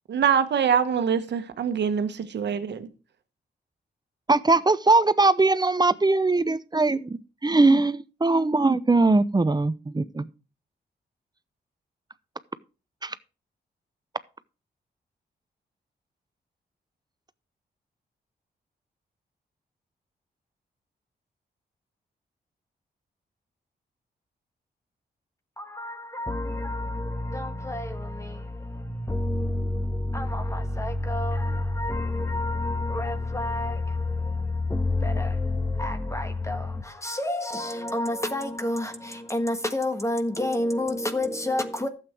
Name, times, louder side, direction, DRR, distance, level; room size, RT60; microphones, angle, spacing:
voice 1, 0.1-2.1 2.3-2.9, right 7 dB, 75° right, 1.3 m, -24 dB
voice 2, 4.3-10.2 13.0-13.1, right 3 dB, 25° right, 0.7 m, -21 dB
voice 3, 25.6-41.9, left 2 dB, 15° left, 1.5 m, -28 dB
12.0 x 8.0 x 4.5 m
cardioid pair, 55°, 18 cm